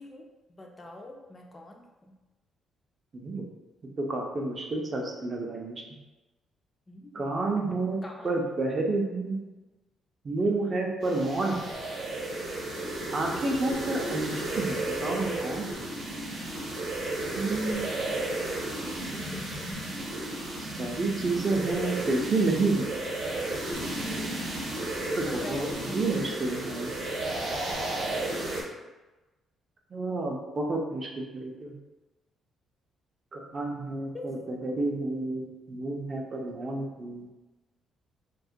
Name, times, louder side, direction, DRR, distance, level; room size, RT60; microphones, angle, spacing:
voice 1, 0.0-2.1 6.9-7.3 8.0-8.4 10.4-10.8 12.8-13.1 18.9-19.7 24.0-24.4 25.1-26.8 34.1-34.2, left 2 dB, 25° left, 1 dB, 0.3 m, -44 dB
voice 2, 3.1-3.5 4.1-5.7 7.1-9.4 10.2-11.7 13.1-15.9 17.3-18.0 20.6-22.9 25.2-25.7 25.9-26.9 29.9-31.7 33.3-37.3, right 2 dB, 40° right, 0 dB, 0.4 m, -30 dB
sound 1, 11.0-28.6, right 2 dB, 75° right, 0.7 m, -33 dB
2.2 x 2.1 x 2.6 m, 1.1 s
cardioid pair, 90°, 0 cm